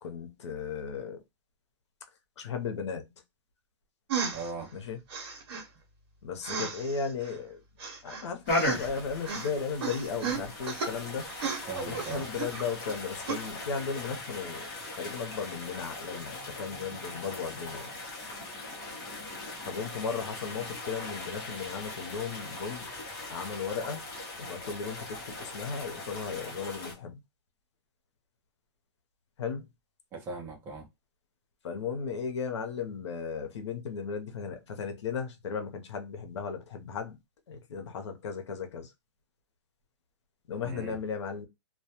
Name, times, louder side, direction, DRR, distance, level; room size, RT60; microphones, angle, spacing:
voice 1, 0.0-1.2 2.4-3.1 4.7-5.0 6.2-7.6 8.0-11.3 11.9-14.7 15.0-17.9 19.6-22.9 23.3-24.0 24.4-27.2 29.4-29.7 31.6-37.2 37.5-38.9 40.5-41.5, left 6 dB, 75° left, 0.7 m, -36 dB
sound 1, 4.1-4.5 5.1-5.6 6.4-7.3 7.8-9.0 9.2-9.5 9.8-10.9 11.3-12.9 13.3-13.4, right 6 dB, 60° right, 0.9 m, -34 dB
voice 2, 4.3-4.7 11.7-12.3 30.1-30.9 40.6-41.0, right 4 dB, 15° right, 0.5 m, -39 dB
sound 2, 8.5-26.9, left 2 dB, 25° left, 0.7 m, -38 dB
2.2 x 2.1 x 2.8 m
hypercardioid pair, 160°, 15 cm